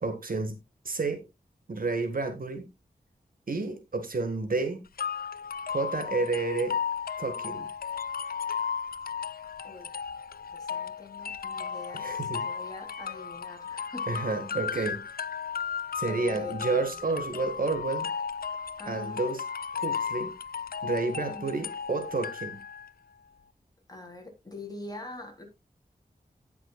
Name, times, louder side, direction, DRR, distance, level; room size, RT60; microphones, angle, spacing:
voice 1, 0.0-0.6 0.9-1.3 1.7-2.7 3.5-4.9 5.7-6.8 7.2-7.7 11.9-12.5 14.1-15.0 15.9-18.1 18.9-19.4 19.7-20.3 20.8-22.6, right 3 dB, 60° right, 1.8 m, -30 dB
sound 1, 5.0-22.9, left 6 dB, 65° left, 0.5 m, -35 dB
voice 2, 10.5-12.1 12.4-14.2 14.7-14.9 16.0-16.9 18.8-19.2 21.3-21.7 23.9-25.4, left 2 dB, 25° left, 3.4 m, -43 dB
17.5 x 6.0 x 2.4 m
wide cardioid pair, 100°, 16 cm